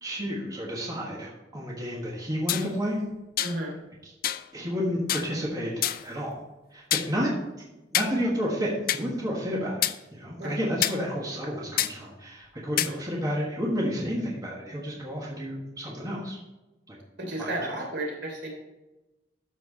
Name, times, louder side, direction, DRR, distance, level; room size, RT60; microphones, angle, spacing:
voice 1, 0.0-3.0 4.5-6.4 6.7-7.3 7.9-9.8 10.1-16.4 16.9-17.0 17.4-17.5, equal, 20° right, -4 dB, 1.4 m, -31 dB
sound 1, 2.5-2.7 3.4-3.6 4.2-4.4 5.1-5.3 5.8-6.1 6.9-7.1 7.9-8.1 8.9-9.0 9.8-10.0 10.8-11.0 11.8-11.9 12.8-12.9, left 12 dB, 55° left, 0.4 m, -26 dB
voice 2, 3.4-3.7 10.4-10.6 12.8-13.0 17.2-18.5, right 1 dB, 70° right, -1 dB, 3.1 m, -33 dB
12.5 x 4.5 x 4.1 m, 1.0 s
head